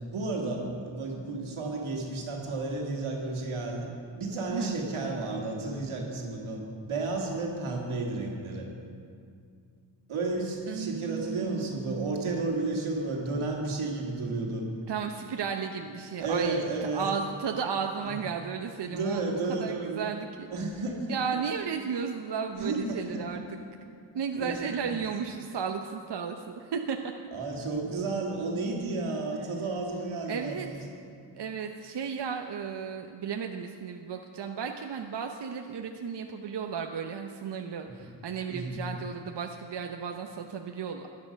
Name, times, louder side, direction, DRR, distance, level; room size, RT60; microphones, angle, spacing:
voice 1, 0.0-3.9 4.2-8.7 10.1-14.7 16.2-17.1 18.0-18.2 18.9-20.1 20.5-21.2 22.5-23.4 24.4-25.0 27.3-30.8 38.5-38.8, right 3 dB, 80° right, -1 dB, 2.1 m, -32 dB
voice 2, 10.7-12.4 14.9-16.7 16.9-20.5 21.1-23.4 24.1-27.0 30.3-30.7 31.3-41.1, right 6 dB, 55° right, 4 dB, 0.8 m, -34 dB
13.0 x 9.7 x 5.2 m, 2.3 s
supercardioid pair, 40°, 48 cm